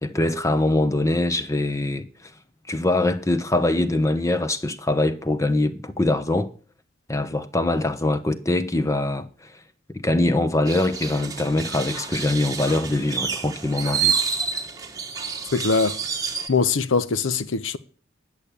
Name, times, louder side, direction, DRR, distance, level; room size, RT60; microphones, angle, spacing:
voice 1, 0.0-2.0 2.7-6.5 7.1-9.5 9.9-14.2, left 2 dB, 15° left, 0.8 m, -23 dB
sound 1, 10.7-16.5, right 6 dB, 15° right, 1.3 m, -28 dB
voice 2, 15.5-16.0 16.5-17.8, left 4 dB, 65° left, 0.8 m, -22 dB
11.0 x 6.9 x 8.3 m
head